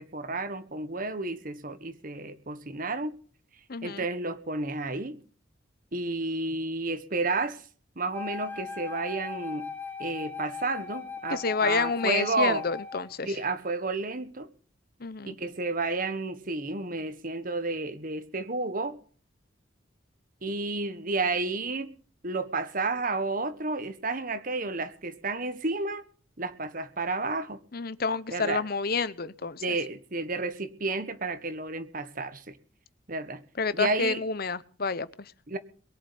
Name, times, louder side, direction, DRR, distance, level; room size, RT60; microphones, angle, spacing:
voice 1, 0.0-3.2 3.8-5.2 5.9-7.6 8.0-9.7 10.0-12.6 13.2-14.5 15.2-19.0 20.4-21.9 22.2-26.0 26.4-27.6 28.3-28.6 29.6-32.6 33.1-33.4 33.7-34.2 35.5-35.6, right 3 dB, 45° right, 1.4 m, -31 dB
voice 2, 3.7-4.1 11.3-13.3 15.0-15.4 27.7-29.8 33.6-35.3, left 4 dB, 50° left, 0.8 m, -29 dB
Wind instrument woodwind instrument, 8.1-13.2, left 5 dB, 10° left, 2.0 m, -39 dB
22.0 x 7.8 x 7.0 m
head